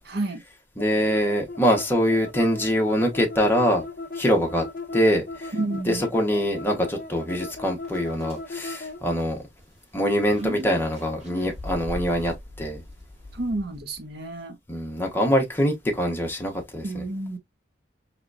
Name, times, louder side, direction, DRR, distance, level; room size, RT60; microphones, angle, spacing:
voice 1, 0.0-0.4 5.5-6.0 10.4-10.8 13.3-14.6 16.8-17.4, right 2 dB, 60° right, 0.7 m, -30 dB
sound 1, 0.8-9.0, left 2 dB, 50° left, 0.5 m, -37 dB
voice 2, 0.8-3.8 4.1-4.6 4.9-5.5 5.9-9.4 9.9-12.8 14.7-17.0, equal, 10° left, 1.0 m, -24 dB
sound 2, 7.8-14.2, left 1 dB, 35° right, 2.0 m, -42 dB
4.0 x 3.1 x 2.4 m
head